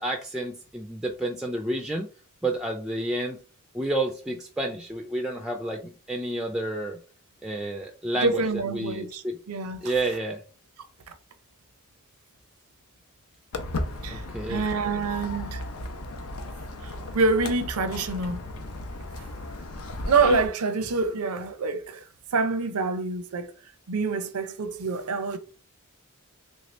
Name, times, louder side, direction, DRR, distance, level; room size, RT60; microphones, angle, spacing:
voice 1, 0.0-2.1 2.4-3.4 3.7-7.0 7.4-8.4 8.7-9.4 9.8-10.4 14.1-14.6, right 1 dB, 5° right, 0.3 m, -30 dB
voice 2, 8.2-9.9 14.0-15.6 16.8-18.4 19.2-19.3 20.1-22.1 22.3-23.5 23.9-25.4, right 4 dB, 85° right, 0.6 m, -26 dB
Walk footsteps, 13.5-20.5, left 2 dB, 85° left, 0.6 m, -35 dB
3.5 x 2.7 x 3.2 m
head